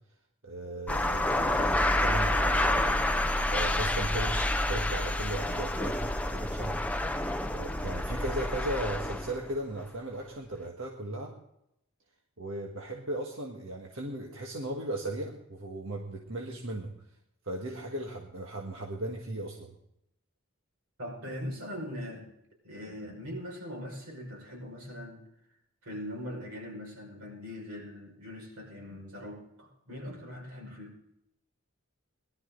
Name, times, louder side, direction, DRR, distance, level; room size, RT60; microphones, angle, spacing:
voice 1, 0.4-3.0 3.5-6.8 7.5-11.3 12.4-16.9 17.4-19.7, right 1 dB, 65° right, 0 dB, 1.6 m, -37 dB
sound 1, 0.9-9.5, left 1 dB, 5° left, 0.6 m, -28 dB
voice 2, 21.0-22.3 22.6-25.2 25.8-31.0, left 1 dB, 90° right, -1 dB, 5.9 m, -41 dB
18.5 x 12.0 x 4.0 m, 0.79 s
head